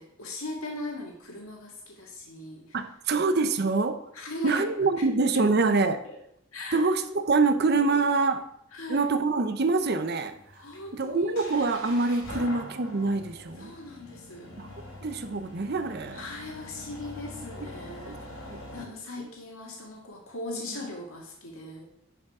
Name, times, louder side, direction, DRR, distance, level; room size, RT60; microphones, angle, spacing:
voice 1, 0.0-2.8 4.1-4.7 5.3-5.4 6.1-6.2 6.5-6.9 8.7-9.1 10.6-11.5 12.3-12.4 13.6-14.5 16.1-21.9, left 1 dB, 90° left, -1 dB, 1.9 m, -39 dB
voice 2, 2.7-4.0 4.4-6.0 6.7-8.4 8.9-10.4 10.9-13.7 14.6-14.7 15.0-16.2 18.0-18.2 18.5-18.9 19.2-19.3, right 3 dB, 50° right, 9 dB, 0.6 m, -25 dB
sound 1, 9.7-18.8, left 1 dB, 70° left, 3.6 m, -44 dB
10.5 x 5.1 x 4.8 m, 0.74 s
head